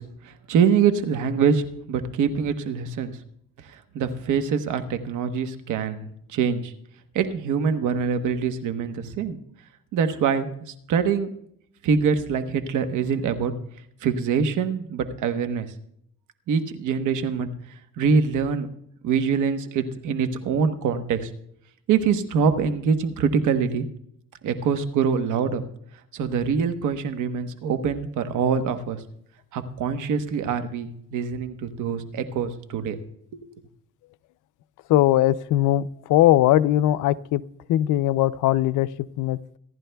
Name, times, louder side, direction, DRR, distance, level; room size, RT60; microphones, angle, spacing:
voice 1, 0.0-3.1 3.9-6.7 7.1-9.4 9.9-10.5 10.9-11.3 11.8-13.5 14.0-15.7 16.5-17.5 18.0-18.7 19.0-21.3 21.9-23.9 24.4-25.6 26.1-29.0 29.5-33.0 33.3-33.4, right 6 dB, 80° right, 8 dB, 1.1 m, -24 dB
voice 2, 34.9-37.4 37.7-38.9 39.2-39.4, left 14 dB, 80° left, 16 dB, 0.5 m, -20 dB
26.5 x 10.5 x 2.3 m, 0.71 s
cardioid pair, 90°, 30 cm